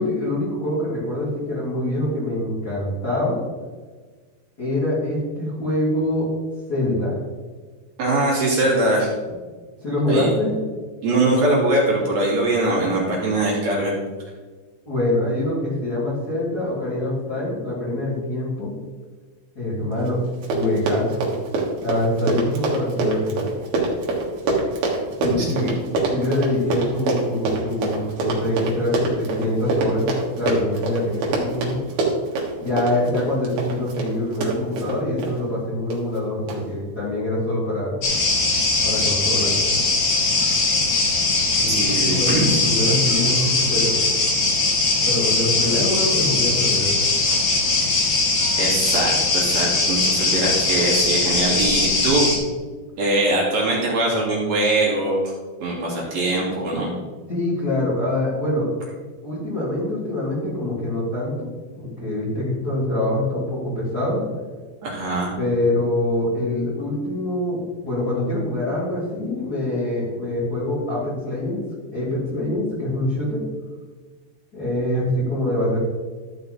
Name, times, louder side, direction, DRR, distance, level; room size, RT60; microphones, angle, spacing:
voice 1, 0.0-3.4 4.6-6.3 6.7-7.2 9.8-10.6 14.8-18.7 19.5-20.2 20.5-21.3 21.8-23.5 25.2-30.1 30.4-31.8 32.6-38.0 38.8-39.5 41.6-43.9 45.0-46.9 57.3-58.7 59.2-61.5 61.8-64.2 65.4-71.6 71.9-73.4 74.5-75.8, left 1 dB, 25° left, -11 dB, 3.1 m, -24 dB
voice 2, 8.0-9.1 10.1-10.3 11.0-13.9 25.4-25.7 41.7-42.6 48.6-52.3 53.0-55.2 55.6-56.9 64.8-65.3, right 2 dB, 45° right, -4 dB, 3.1 m, -22 dB
Run, 20.1-20.2 20.3-35.3 35.9-36.2 36.5-36.6, right 3 dB, 60° right, 2.9 m, -25 dB
sound 1, 38.0-52.4, left 3 dB, 60° left, 1.5 m, -20 dB
13.5 x 5.7 x 4.0 m, 1.4 s
omnidirectional pair, 5.2 m